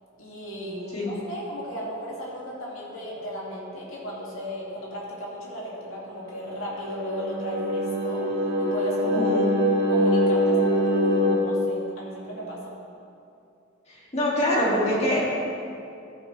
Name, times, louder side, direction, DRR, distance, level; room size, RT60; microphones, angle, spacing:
voice 1, 0.2-8.3 8.6-9.4 9.9-12.7, equal, 80° left, -5 dB, 2.6 m, -35 dB
sound 1, 6.4-11.4, equal, 80° right, 2.2 m, -23 dB
voice 2, 9.1-9.5 13.9-15.2, left 1 dB, 35° left, -6 dB, 2.6 m, -24 dB
14.0 x 8.3 x 3.4 m, 2.6 s
head